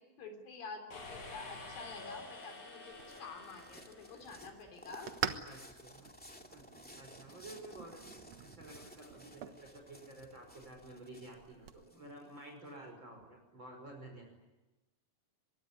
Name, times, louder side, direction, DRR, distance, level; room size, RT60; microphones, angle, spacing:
voice 1, 0.0-5.1, left 4 dB, 85° left, 5 dB, 5.4 m, -48 dB
sound 1, 0.9-4.7, left 2 dB, 60° left, 9.0 m, -49 dB
sound 2, 2.3-12.7, equal, 5° left, 1.4 m, -56 dB
sound 3, 2.9-11.8, right 8 dB, 60° right, 2.2 m, -46 dB
voice 2, 5.4-6.1 6.5-6.6 7.0-8.0 8.4-14.3, right 1 dB, 30° right, 2 dB, 6.0 m, -51 dB
24.0 x 22.5 x 9.8 m, 1.0 s
omnidirectional pair, 4.0 m